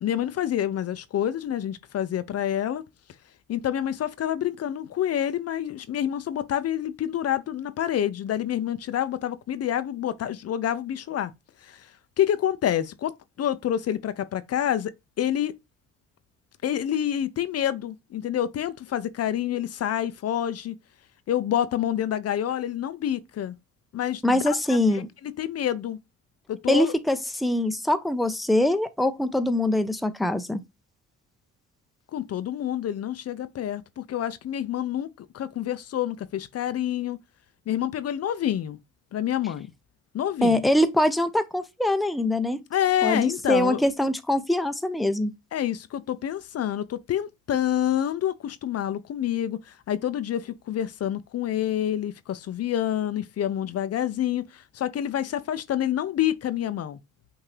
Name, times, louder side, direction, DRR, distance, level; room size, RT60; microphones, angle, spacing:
voice 1, 0.0-2.8 3.5-11.3 11.6-11.9 12.2-14.9 15.2-15.6 16.6-20.8 21.3-23.5 23.9-26.0 26.5-26.9 32.1-37.2 37.7-38.8 39.1-39.7 40.1-40.6 42.7-43.8 45.5-57.0, left 11 dB, 55° left, 0.6 m, -28 dB
voice 2, 24.2-25.1 26.7-30.6 40.4-42.6 43.0-45.3, left 1 dB, ahead, 0.6 m, -23 dB
5.8 x 2.7 x 3.2 m
cardioid pair, 90°, 30 cm